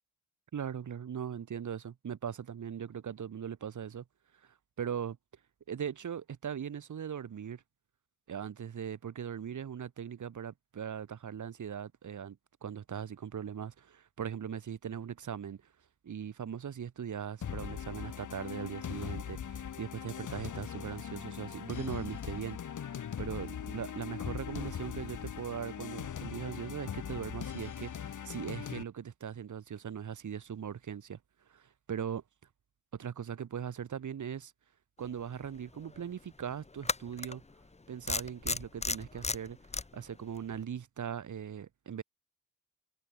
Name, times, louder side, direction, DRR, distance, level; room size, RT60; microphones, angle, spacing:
voice 1, 0.5-4.0 4.8-5.2 5.7-7.6 8.3-15.6 16.0-31.2 31.5-32.2 32.9-34.5 35.0-37.4 37.9-39.6 39.9-42.0, right 8 dB, 70° right, 3.3 m, -40 dB
sound 1, 17.4-28.8, left 8 dB, 75° left, 3.1 m, -40 dB
sound 2, 35.4-35.5 36.8-37.3 38.1-39.8, left 3 dB, 20° left, 1.3 m, -33 dB
wide cardioid pair, 100°, 31 cm